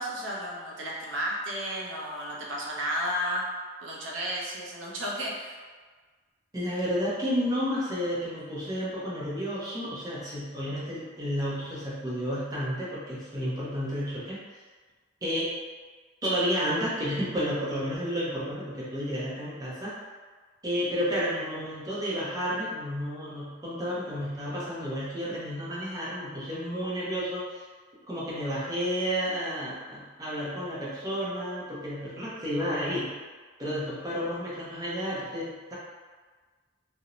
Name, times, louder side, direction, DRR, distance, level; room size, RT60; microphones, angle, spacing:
voice 1, 0.0-3.4 3.8-5.5, equal, 65° right, -3 dB, 0.5 m, -33 dB
voice 2, 6.5-14.6 15.2-15.5 16.2-19.9 20.6-27.6 28.1-33.1 33.6-35.7, equal, 20° right, -8 dB, 0.5 m, -31 dB
2.5 x 2.0 x 2.9 m, 1.4 s
head